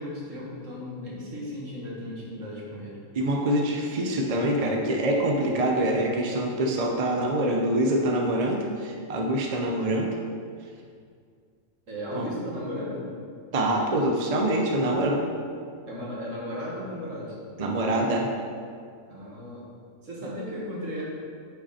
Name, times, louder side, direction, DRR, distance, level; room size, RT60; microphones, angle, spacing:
voice 1, 0.0-3.0 11.9-13.1 15.9-17.4 19.1-19.7 20.0-21.0, left 1 dB, 65° right, -5 dB, 2.2 m, -35 dB
voice 2, 3.1-10.2 12.1-12.3 13.5-15.2 17.6-18.3 20.2-20.3, right 1 dB, 35° right, 0 dB, 0.7 m, -25 dB
8.8 x 5.8 x 4.2 m, 2.2 s
omnidirectional pair, 1.4 m